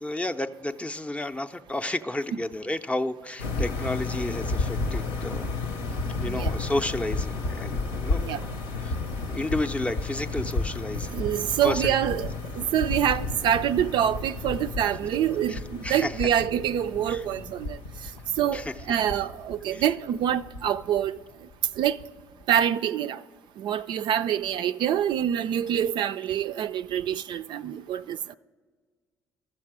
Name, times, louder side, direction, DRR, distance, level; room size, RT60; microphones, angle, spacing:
voice 1, 0.0-5.5 6.2-8.5 8.8-8.9 9.3-11.1 11.6-11.9 15.5-16.1 17.1-17.2 18.5-18.6 19.7-19.8, left 1 dB, 15° left, 0.5 m, -31 dB
sound 1, 3.4-22.4, left 3 dB, 80° left, 0.9 m, -32 dB
voice 2, 11.1-17.8 18.4-18.6 18.9-21.1 21.8-22.0 22.5-23.2 23.6-28.2, right 10 dB, 60° right, 0.3 m, -26 dB
13.5 x 7.3 x 4.7 m
hypercardioid pair, 55°, 9 cm